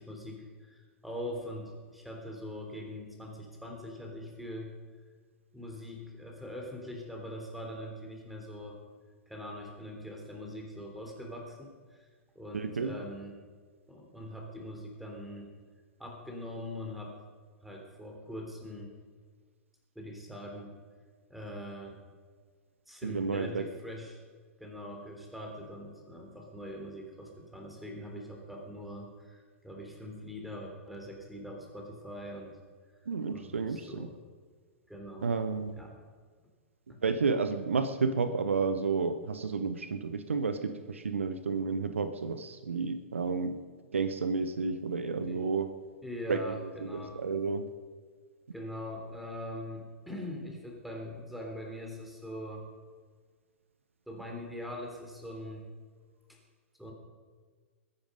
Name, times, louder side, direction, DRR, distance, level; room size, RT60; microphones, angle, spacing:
voice 1, 0.0-4.7 5.5-8.8 9.3-12.1 12.3-13.4 13.9-15.5 16.0-17.1 17.6-18.9 19.9-20.7 21.3-22.0 22.9-24.2 24.6-32.6 33.3-34.1 34.9-35.3 35.7-36.0 36.9-37.0 45.3-45.4 46.0-47.2 48.5-52.7 54.1-55.7 56.3-56.4 56.8-56.9, left 1 dB, ahead, 1 dB, 3.4 m, -42 dB
voice 2, 12.5-13.0 23.0-23.6 33.1-34.1 35.2-35.8 37.0-43.6 43.9-45.7 46.3-46.4 46.9-47.7, right 4 dB, 70° right, 10 dB, 1.0 m, -31 dB
22.0 x 10.0 x 5.3 m, 1.6 s
figure-of-eight pair, 105°, 7 cm